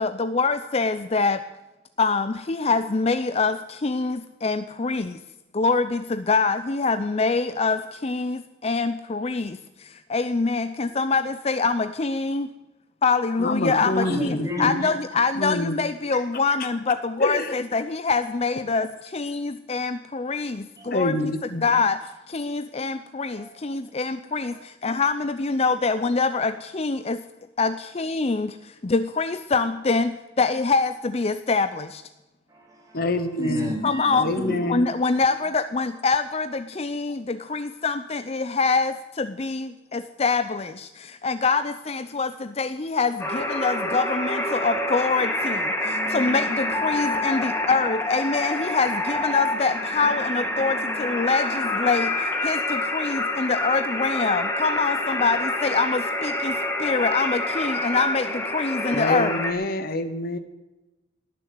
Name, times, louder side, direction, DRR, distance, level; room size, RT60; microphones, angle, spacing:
voice 1, 0.0-1.4 2.0-5.2 5.5-12.5 13.0-21.1 21.6-22.0 22.3-27.2 27.6-32.0 33.8-34.3 34.7-59.4, left 4 dB, 35° left, 11 dB, 0.5 m, -25 dB
voice 2, 13.4-14.8 15.3-15.8 17.2-17.5 20.8-21.7 32.9-33.7 34.2-34.9 58.9-60.4, left 2 dB, 50° left, 10 dB, 1.0 m, -26 dB
voice 3, 14.1-14.9 16.1-16.2 20.8-21.0 23.4-23.5 24.4-24.6 32.5-33.0 33.4-34.7 39.4-39.5, equal, 20° right, 0 dB, 3.2 m, -32 dB
sound 1, 43.2-59.5, left 1 dB, 15° left, 2.0 m, -27 dB
18.5 x 6.9 x 9.6 m, 1.0 s
head